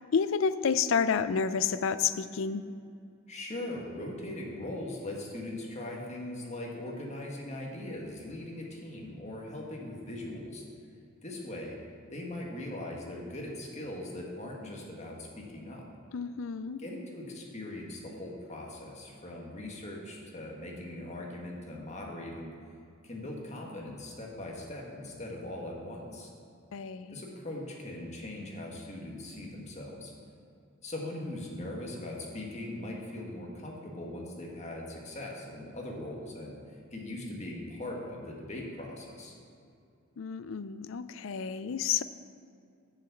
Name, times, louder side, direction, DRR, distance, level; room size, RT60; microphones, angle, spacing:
voice 1, 0.1-2.6 16.1-16.8 26.7-27.2 40.2-42.0, left 6 dB, 70° left, 13 dB, 0.4 m, -30 dB
voice 2, 3.3-10.6 11.2-11.8 12.1-15.8 16.8-22.5 23.0-26.3 27.1-30.1 30.8-39.3, left 1 dB, 35° left, -1 dB, 1.6 m, -40 dB
7.6 x 7.1 x 7.2 m, 2.4 s
head